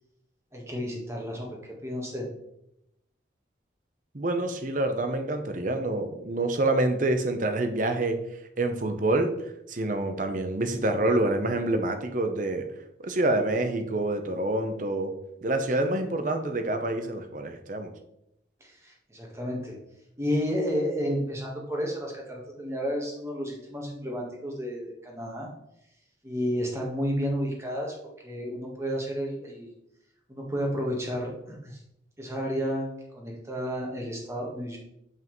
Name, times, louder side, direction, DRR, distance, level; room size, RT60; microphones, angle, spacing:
voice 1, 0.5-2.3 18.6-19.7 20.2-25.5 26.2-27.9 28.2-29.7 30.3-31.8 32.2-34.8, equal, 15° right, -1 dB, 1.4 m, -31 dB
voice 2, 4.1-8.2 8.6-12.7 13.0-15.1 15.4-17.9, right 2 dB, 45° right, 6 dB, 0.8 m, -27 dB
7.4 x 5.5 x 3.1 m, 0.81 s
head